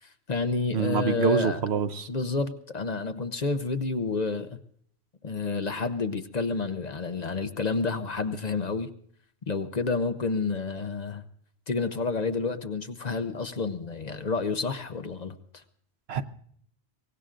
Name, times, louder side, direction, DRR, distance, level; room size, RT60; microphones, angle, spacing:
voice 1, 0.0-1.6 2.1-4.6 5.2-8.9 9.5-11.2 11.7-15.6, left 4 dB, 45° left, 0.8 m, -29 dB
voice 2, 0.7-2.1 16.1-16.2, right 7 dB, 75° right, 1.0 m, -26 dB
23.5 x 18.5 x 2.5 m
omnidirectional pair, 1.1 m